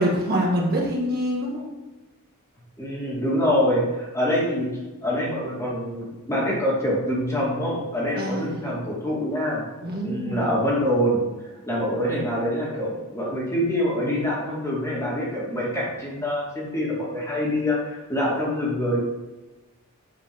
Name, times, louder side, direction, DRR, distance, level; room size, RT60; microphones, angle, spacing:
voice 1, 0.0-1.7 8.2-8.7 9.8-10.5, equal, 45° right, -2 dB, 1.9 m, -25 dB
voice 2, 2.8-4.7 5.0-9.6 10.0-11.2 11.7-19.0, equal, 15° left, -5 dB, 2.5 m, -25 dB
8.3 x 5.3 x 6.2 m, 1.1 s
head